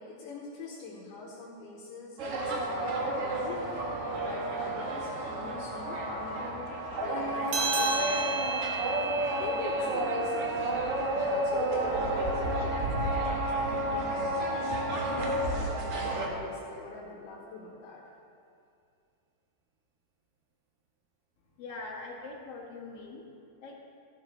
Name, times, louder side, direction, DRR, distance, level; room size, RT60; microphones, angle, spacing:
voice 1, 0.0-6.7 7.0-8.4 8.8-14.5 14.9-18.0, left 3 dB, 70° left, -3 dB, 2.7 m, -44 dB
sound 1, 2.2-16.3, right 1 dB, 55° right, 1.8 m, -31 dB
sound 2, 7.5-12.4, right 4 dB, 80° right, 3.3 m, -35 dB
voice 2, 21.6-23.2 23.6-23.8, left 3 dB, 50° left, -3 dB, 2.4 m, -42 dB
16.0 x 11.5 x 3.3 m, 2.5 s
omnidirectional pair, 4.1 m